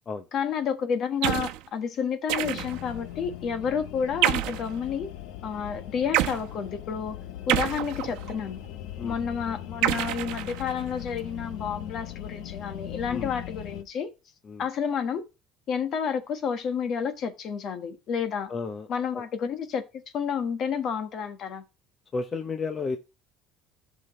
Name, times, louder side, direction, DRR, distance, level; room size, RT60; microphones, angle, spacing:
voice 1, 0.3-5.1 5.4-7.2 7.5-8.6 9.0-14.1 14.6-15.2 15.7-18.5 18.9-21.6, left 7 dB, 45° left, 1.4 m, -30 dB
sound 1, 1.2-1.6 2.3-2.9 4.2-4.7 6.1-6.4 7.5-8.4 9.8-10.9, right 14 dB, 80° right, 1.0 m, -27 dB
sound 2, 2.4-13.8, left 12 dB, 70° left, 0.9 m, -39 dB
voice 2, 18.5-18.9 19.1-19.2 22.1-23.0, left 4 dB, 25° left, 0.8 m, -32 dB
14.5 x 5.9 x 3.2 m
cardioid pair, 150°, 0 cm